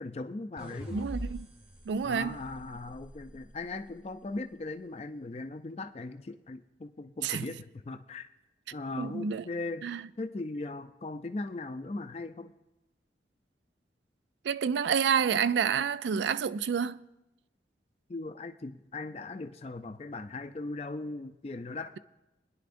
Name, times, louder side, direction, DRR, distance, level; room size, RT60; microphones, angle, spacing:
voice 1, 0.0-1.1 2.0-8.3 8.7-12.5 18.1-22.0, left 2 dB, 35° left, 0.4 m, -39 dB
sound 1, 0.6-3.8, equal, 35° right, 1.4 m, -43 dB
voice 2, 0.9-1.5 1.9-2.4 7.2-7.4 9.0-9.4 9.8-10.1 14.4-17.0, right 7 dB, 85° right, 0.3 m, -29 dB
23.0 x 10.5 x 2.6 m
head